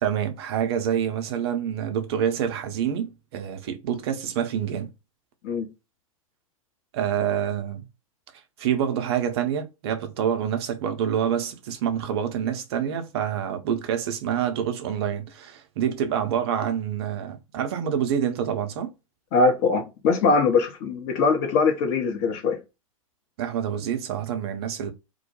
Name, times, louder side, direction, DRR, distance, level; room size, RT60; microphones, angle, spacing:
voice 1, 0.0-4.9 6.9-7.9 8.6-18.9 23.4-24.9, right 9 dB, 45° right, 0.6 m, -27 dB
voice 2, 19.3-22.6, left 4 dB, 35° left, 0.7 m, -22 dB
2.2 x 2.1 x 2.8 m
figure-of-eight pair, 105°, 18 cm